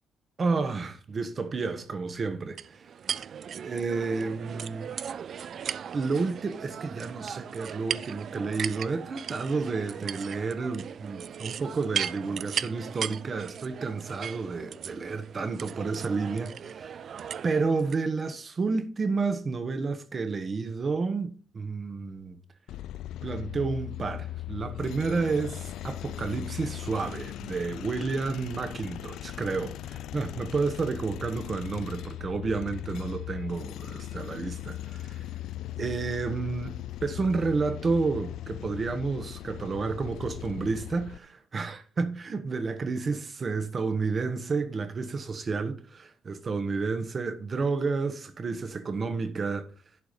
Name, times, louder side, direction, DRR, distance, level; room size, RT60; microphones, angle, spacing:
voice 1, 0.4-2.8 3.6-4.9 5.9-17.0 17.4-22.4 23.2-35.2 35.8-36.8 37.0-49.7, right 4 dB, 40° right, 1.4 m, -30 dB
sound 1, 2.6-18.0, right 8 dB, 60° right, 0.4 m, -37 dB
sound 2, 22.7-41.2, left 14 dB, 85° left, 0.4 m, -39 dB
11.0 x 4.8 x 5.2 m
cardioid pair, 90°, 0 cm